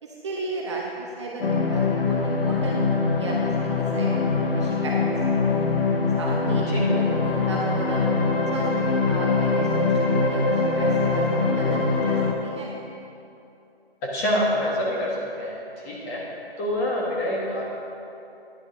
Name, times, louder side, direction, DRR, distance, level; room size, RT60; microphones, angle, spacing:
voice 1, 0.0-2.8 3.2-3.5 3.9-4.9 5.4-5.7 6.2-6.6 7.2-8.1 8.5-12.2 12.4-12.7, right 2 dB, 30° right, -2 dB, 0.8 m, -34 dB
sound 1, 1.4-12.3, left 4 dB, 65° left, 1.1 m, -23 dB
voice 2, 6.7-7.0 14.0-16.3 16.6-17.6, equal, 15° left, -4 dB, 1.4 m, -26 dB
10.5 x 9.6 x 3.7 m, 2.8 s
figure-of-eight pair, 150°, 31 cm